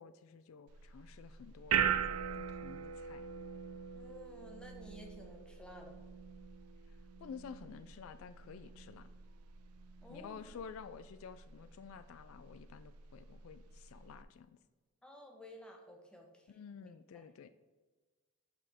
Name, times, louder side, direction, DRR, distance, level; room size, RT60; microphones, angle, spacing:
voice 1, 0.0-1.9 2.3-3.3 6.9-9.1 10.1-14.6 16.5-17.5, left 6 dB, 75° left, 13 dB, 0.3 m, -51 dB
sound 1, 0.7-14.2, right 8 dB, 90° right, 0.4 m, -41 dB
voice 2, 3.9-6.0 10.0-10.5 15.0-16.5 16.8-17.2, equal, 5° left, 1 dB, 0.8 m, -54 dB
8.3 x 5.0 x 3.5 m, 1.3 s
head